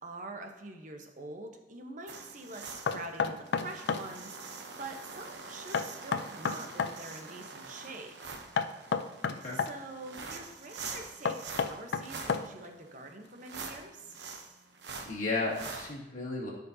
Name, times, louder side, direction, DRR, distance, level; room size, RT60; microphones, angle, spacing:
voice 1, 0.0-8.1 9.5-14.2, right 2 dB, 45° right, 4 dB, 0.9 m, -45 dB
sound 1, 2.1-15.9, right 4 dB, 80° right, 0.9 m, -45 dB
Knock, 2.9-4.1 5.7-7.0 8.6-9.7 11.3-12.7, left 5 dB, 85° left, 0.5 m, -31 dB
voice 2, 9.3-9.6 15.1-16.5, left 3 dB, 45° left, -4 dB, 2.2 m, -34 dB
13.5 x 5.2 x 2.7 m, 1.1 s
head